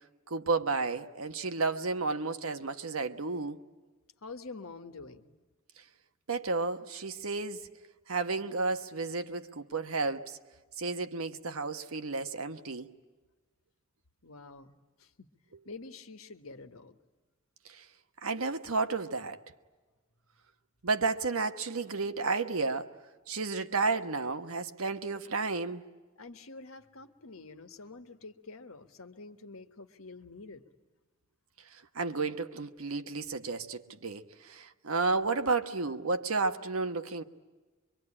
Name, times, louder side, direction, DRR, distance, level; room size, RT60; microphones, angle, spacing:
voice 1, 0.3-3.6 6.3-7.7 8.1-10.4 10.8-12.9 17.6-17.8 18.2-19.4 20.8-22.9 23.3-25.8 31.7-37.2, right 4 dB, 90° right, 1.2 m, -32 dB
voice 2, 4.2-5.4 14.2-14.7 15.0-15.3 15.6-17.0 26.2-30.6, left 3 dB, 85° left, 1.5 m, -47 dB
24.5 x 24.0 x 9.9 m
head